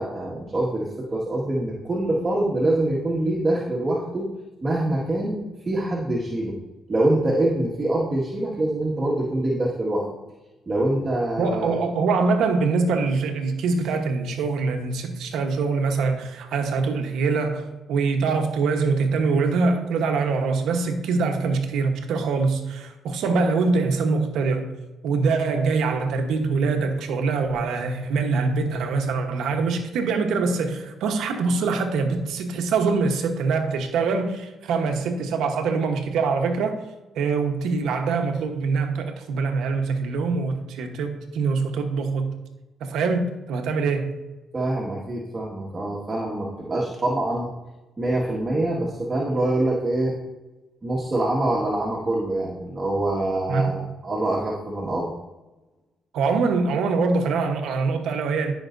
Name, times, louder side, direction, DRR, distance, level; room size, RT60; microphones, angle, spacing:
voice 1, 0.0-4.3 4.6-6.6 6.9-10.1 10.7-11.8 44.5-47.5 48.0-50.1 50.8-55.1, right 1 dB, 30° right, 1.9 m, -25 dB
voice 2, 11.4-24.8 25.0-36.8 37.1-42.3 42.8-44.2 53.5-53.7 56.1-58.5, right 4 dB, 85° right, 1.2 m, -24 dB
14.0 x 5.7 x 2.7 m
cardioid pair, 90°, 0 cm